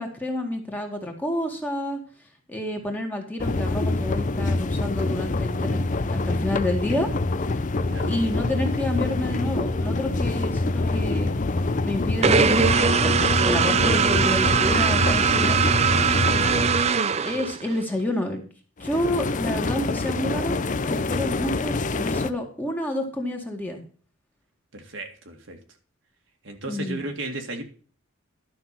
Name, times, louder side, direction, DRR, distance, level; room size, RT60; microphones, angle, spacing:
voice 1, 0.0-2.0 2.5-7.1 7.4-7.6 8.1-11.3 11.8-13.1 13.4-15.6 17.2-18.4 18.8-20.6 20.8-23.8 26.7-27.0, left 1 dB, 10° left, 2 dB, 2.0 m, -29 dB
sound 1, 3.4-17.0 18.8-22.3, left 2 dB, 35° left, 0.5 m, -26 dB
sound 2, 12.2-17.8, right 6 dB, 30° right, 0.5 m, -21 dB
voice 2, 24.7-25.6 26.4-27.6, right 2 dB, 65° right, 3 dB, 2.2 m, -35 dB
12.0 x 6.0 x 5.7 m, 0.41 s
head